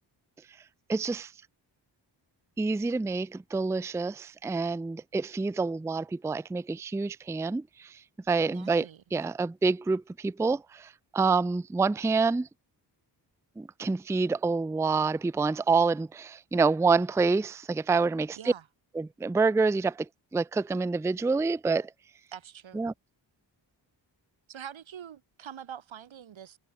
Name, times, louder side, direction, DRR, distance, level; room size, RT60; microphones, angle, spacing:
voice 1, 0.9-1.3 2.6-8.0 8.3-12.5 13.6-18.5 18.9-21.9 22.7-22.9, right 4 dB, 5° right, 0.4 m, -27 dB
voice 2, 8.5-9.0 18.4-18.6 22.3-22.8 24.5-26.6, right 9 dB, 90° right, 3.8 m, -44 dB
cardioid pair, 70°, 45 cm